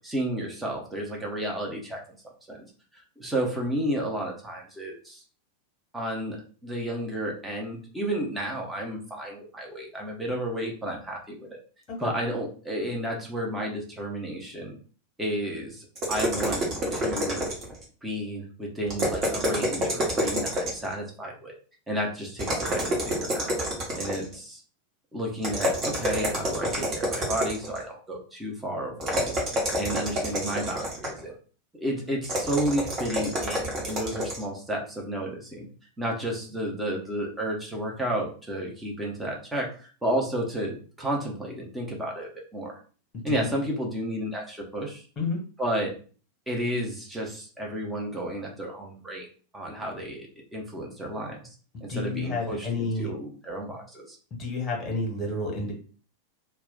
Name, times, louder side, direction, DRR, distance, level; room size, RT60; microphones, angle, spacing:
voice 1, 0.0-2.0 2.5-2.6 2.9-5.2 5.9-6.4 6.6-11.6 12.0-14.8 15.2-16.6 16.9-17.4 18.0-21.5 21.9-23.5 23.9-24.6 25.1-29.4 29.7-31.4 31.8-35.7 36.0-42.8 43.2-45.0 45.6-46.0 46.5-49.3 49.5-51.5 51.8-54.2, right 1 dB, 5° right, -1 dB, 0.8 m, -32 dB
sound 1, 16.0-17.8 18.9-20.9 22.4-24.4 25.4-27.8 29.0-31.2 32.2-34.4, equal, 30° right, 1.1 m, -28 dB
voice 2, 51.9-53.1 54.4-55.7, left 3 dB, 25° left, 0 dB, 1.1 m, -30 dB
2.3 x 2.2 x 3.8 m, 0.39 s
figure-of-eight pair, 90°, 0 cm